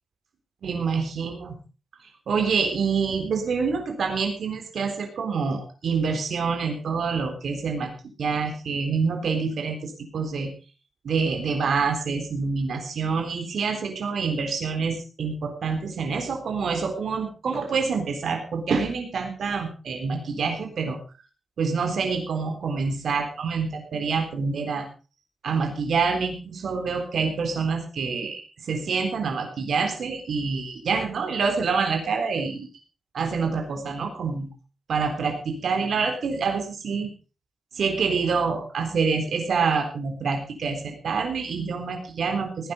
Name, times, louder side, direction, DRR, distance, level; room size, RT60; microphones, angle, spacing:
voice 1, 0.6-1.6 2.3-7.9 8.2-10.5 11.0-21.0 21.6-24.9 25.4-32.7 33.1-34.5 34.9-37.1 37.7-42.7, right 5 dB, 80° right, 4 dB, 3.8 m, -26 dB
18.0 x 10.0 x 5.2 m, 0.35 s
wide cardioid pair, 100°, 0 cm